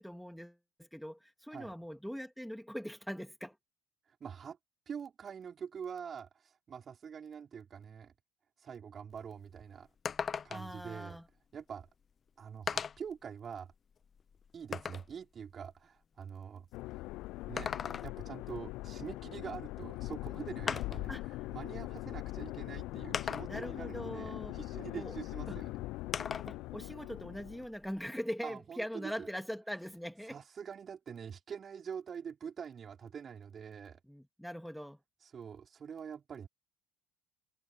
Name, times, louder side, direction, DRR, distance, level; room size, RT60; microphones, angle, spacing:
voice 1, 0.0-3.6 10.5-11.3 20.7-20.8 21.1-21.2 23.5-24.6 24.9-25.2 25.4-25.6 26.2-30.4 34.1-35.0, equal, ahead, 3.0 m, -42 dB
voice 2, 4.2-4.6 4.9-8.1 8.6-9.9 10.1-11.2 11.5-11.9 12.4-13.7 14.5-16.7 17.5-17.7 18.0-25.7 28.4-29.3 30.3-34.0 35.2-36.5, right 7 dB, 35° right, 3.8 m, -45 dB
sound 1, 9.1-9.2 9.5-9.6 10.1-10.8 11.9-12.0 12.7-13.1 13.7-15.1 17.4-18.3 19.8-19.9 20.7-21.1 22.1-22.2 23.1-23.8 26.1-26.6 27.0-28.1, left 6 dB, 35° left, 1.2 m, -38 dB
sound 2, 16.7-27.7, left 19 dB, 60° left, 0.4 m, -41 dB
figure-of-eight pair, 60°, 0 cm